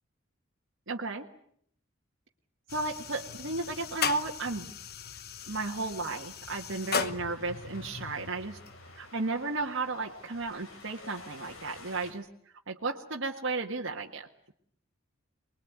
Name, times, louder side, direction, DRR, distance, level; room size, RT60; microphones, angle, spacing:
voice 1, 0.9-1.3 2.7-4.7 5.5-8.6 8.9-12.3 12.7-14.3, right 3 dB, 65° right, 0 dB, 1.7 m, -34 dB
sound 1, 2.7-12.0, left 6 dB, 50° left, 1.1 m, -39 dB
Wind, 6.8-12.1, left 3 dB, 75° left, 6.3 m, -51 dB
24.5 x 21.5 x 9.5 m, 0.66 s
head